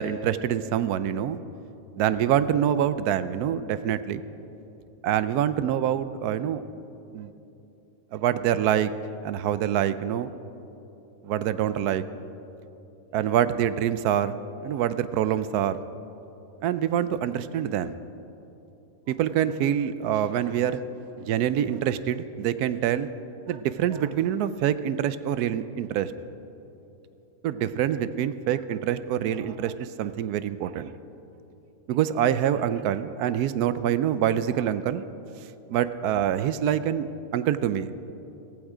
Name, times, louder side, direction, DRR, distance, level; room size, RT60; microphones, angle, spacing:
voice 1, 0.0-1.4 2.0-4.2 5.0-6.6 7.1-7.3 8.1-8.9 9.2-10.3 11.2-12.0 13.1-14.4 14.6-15.8 16.6-17.9 19.1-20.8 21.2-23.1 23.5-26.1 27.4-30.9 31.9-35.0 35.7-37.1 37.3-38.0, right 10 dB, 75° right, 14 dB, 1.1 m, -25 dB
16.0 x 15.0 x 4.9 m, 3.0 s
omnidirectional pair, 1.7 m